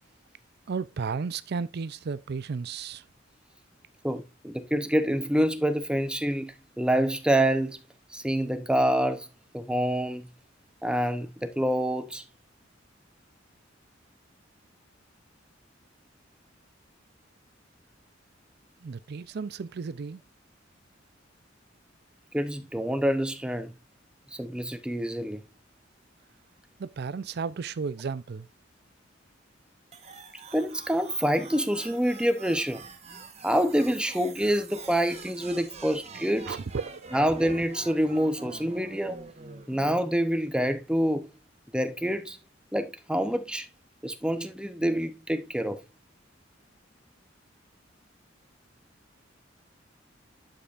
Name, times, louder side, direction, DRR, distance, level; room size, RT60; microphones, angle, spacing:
voice 1, 0.7-3.0 18.8-20.2 26.8-28.5 36.5-37.1, right 5 dB, 60° right, 0.4 m, -33 dB
voice 2, 4.0-7.8 8.1-9.3 9.5-10.3 10.8-12.2 22.3-23.7 24.3-25.4 30.5-32.9 33.4-36.6 37.1-39.2 39.7-41.3 41.7-42.4 42.7-43.7 44.0-45.8, equal, 5° right, 0.7 m, -27 dB
sound 1, 29.9-39.9, right 4 dB, 35° right, 1.2 m, -46 dB
11.5 x 5.2 x 2.5 m
head